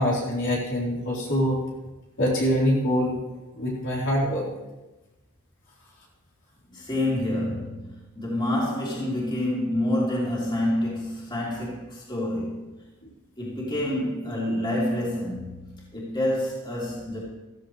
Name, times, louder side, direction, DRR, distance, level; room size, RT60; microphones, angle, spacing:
voice 1, 0.0-1.6 2.2-3.2 3.5-4.4, equal, 60° left, -5 dB, 4.0 m, -24 dB
voice 2, 6.7-12.7 13.4-17.2, left 1 dB, 20° left, -6 dB, 3.8 m, -28 dB
15.5 x 14.5 x 3.3 m, 1.1 s
head